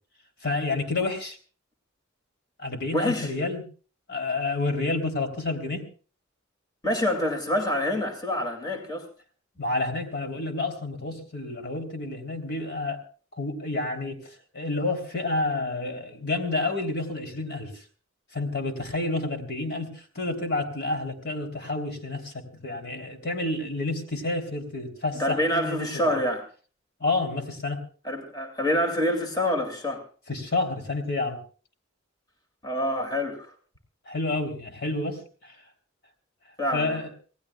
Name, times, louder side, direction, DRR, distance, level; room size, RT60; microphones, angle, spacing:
voice 1, 0.4-1.4 2.6-3.6 4.1-5.9 9.6-13.0 13.4-17.8 18.3-25.9 27.0-27.8 30.3-31.4 34.1-35.6 36.7-37.1, left 2 dB, 55° left, 5 dB, 3.4 m, -29 dB
voice 2, 2.9-3.3 6.8-9.1 25.2-26.4 28.0-30.0 32.6-33.5 36.6-37.0, left 1 dB, 20° left, 3 dB, 2.4 m, -26 dB
27.0 x 18.0 x 2.3 m, 0.39 s
head